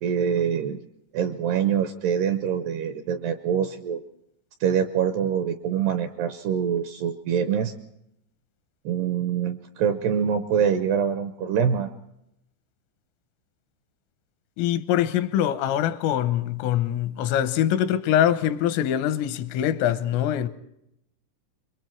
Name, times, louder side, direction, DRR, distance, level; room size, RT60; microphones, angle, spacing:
voice 1, 0.0-0.8 1.1-4.0 4.6-7.7 8.9-11.9, right 8 dB, 80° right, 2.5 m, -25 dB
voice 2, 14.6-20.5, left 11 dB, 85° left, 3.6 m, -23 dB
26.5 x 23.0 x 4.5 m
omnidirectional pair, 5.8 m